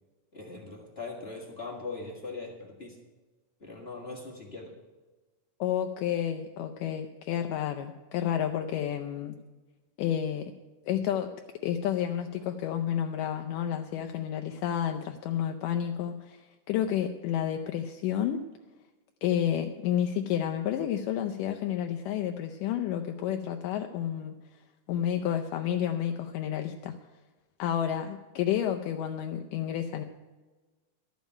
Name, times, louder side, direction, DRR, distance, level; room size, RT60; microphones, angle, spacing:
voice 1, 0.3-2.9 3.6-4.7, left 3 dB, 30° left, 0 dB, 1.1 m, -40 dB
voice 2, 5.6-9.4 10.0-10.5 10.8-11.3 11.6-18.4 19.2-24.3 24.9-27.0 27.6-30.0, left 10 dB, 80° left, 5 dB, 2.1 m, -30 dB
12.5 x 7.3 x 9.1 m, 1.3 s
omnidirectional pair, 4.0 m